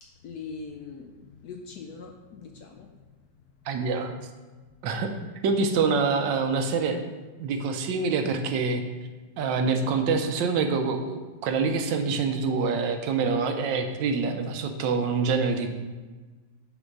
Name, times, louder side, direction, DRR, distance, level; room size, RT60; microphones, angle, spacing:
voice 1, 0.0-3.6 4.6-4.8, left 5 dB, 70° left, 3 dB, 0.9 m, -43 dB
voice 2, 3.7-4.1 4.8-5.1 5.4-7.0 7.4-8.8 9.4-15.7, right 4 dB, 80° right, 6 dB, 1.3 m, -26 dB
5.4 x 3.9 x 6.0 m, 1.3 s
omnidirectional pair, 2.0 m